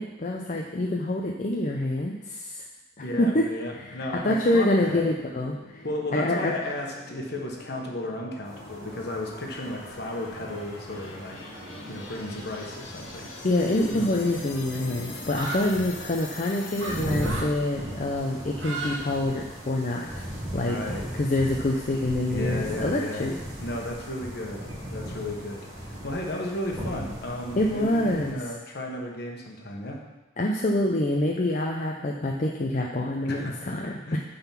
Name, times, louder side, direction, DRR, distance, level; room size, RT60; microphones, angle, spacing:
voice 1, 0.0-2.6 3.2-3.5 3.9-5.8 6.1-6.5 13.4-20.2 20.5-20.8 21.1-23.3 27.5-28.4 30.4-34.2, left 1 dB, 40° left, 0 dB, 0.6 m, -26 dB
voice 2, 3.0-5.1 5.8-11.4 11.9-13.3 20.5-21.1 22.3-23.3 23.6-30.0 33.2-33.7 34.1-34.2, left 1 dB, 55° left, 1 dB, 1.2 m, -34 dB
sound 1, 3.7-17.7, left 3 dB, 75° left, 1.1 m, -44 dB
sound 2, 8.4-28.3, equal, 15° right, 1.7 m, -38 dB
sound 3, 15.3-15.7 16.8-17.0 17.2-17.5 18.5-19.0 19.3-20.0, right 2 dB, 75° right, 1.5 m, -34 dB
9.0 x 4.0 x 5.8 m, 1.0 s
head